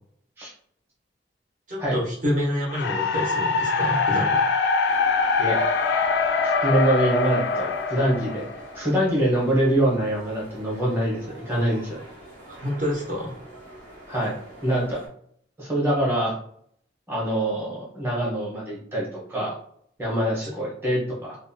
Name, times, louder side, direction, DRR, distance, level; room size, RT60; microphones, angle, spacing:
voice 1, 1.7-4.4 12.5-13.4 20.4-20.5, equal, 45° right, -5 dB, 0.9 m, -28 dB
sound 1, 2.7-8.8, left 4 dB, 65° left, 0.3 m, -23 dB
sound 2, 4.9-15.1, right 1 dB, 85° right, 1.2 m, -45 dB
voice 2, 6.4-8.4 8.7-12.0 14.1-14.3 14.6-15.0 15.6-16.3 17.1-19.5 20.0-21.4, right 1 dB, 10° right, -6 dB, 0.9 m, -24 dB
2.6 x 2.2 x 2.6 m, 0.64 s
head